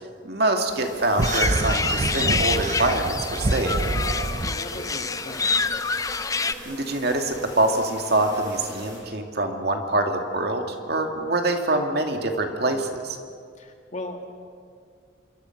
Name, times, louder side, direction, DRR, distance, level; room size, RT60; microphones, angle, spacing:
voice 1, 0.2-3.8 6.7-13.2, right 2 dB, 55° right, 4 dB, 2.3 m, -25 dB
sound 1, 0.7-9.0, right 1 dB, 20° right, 6.9 m, -41 dB
sound 2, 1.2-6.5, left 4 dB, 15° left, 0.6 m, -27 dB
sound 3, 1.2-4.6, right 2 dB, 40° right, 0.8 m, -26 dB
voice 2, 4.4-5.8 13.6-14.2, left 1 dB, 40° left, 3 dB, 2.3 m, -37 dB
27.0 x 24.0 x 6.0 m, 2.3 s
head